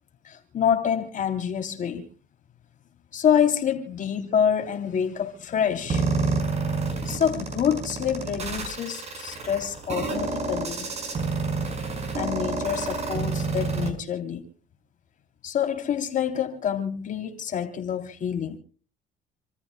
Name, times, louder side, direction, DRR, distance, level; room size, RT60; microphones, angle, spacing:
voice 1, 0.2-2.0 3.1-6.3 7.1-10.9 12.1-14.4 15.4-18.6, left 8 dB, 50° left, 3.5 m, -27 dB
sound 1, 5.9-13.9, right 4 dB, 40° right, 5.3 m, -28 dB
28.5 x 14.0 x 2.3 m
cardioid pair, 110°, 17 cm